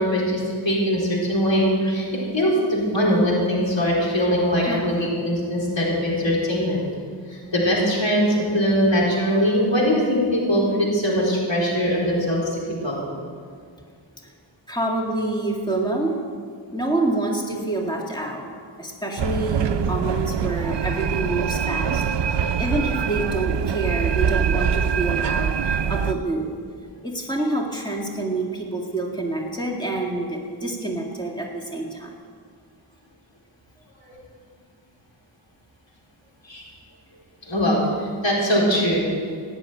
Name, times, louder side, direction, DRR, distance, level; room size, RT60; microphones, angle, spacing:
voice 1, 0.0-6.8 7.5-12.9 15.7-15.9 17.5-17.7 24.9-25.0 30.4-30.6 36.5-36.7 37.5-37.8 38.2-39.0, equal, 80° left, -4 dB, 4.1 m, -21 dB
voice 2, 4.6-5.1 14.2-14.3 14.7-16.2 16.7-18.5 18.8-26.5 27.0-32.1, right 2 dB, 10° left, -1 dB, 2.1 m, -27 dB
sound 1, 19.2-26.1, right 7 dB, 75° right, 0.6 m, -24 dB
17.0 x 7.1 x 9.2 m, 2.1 s
wide cardioid pair, 55°, 44 cm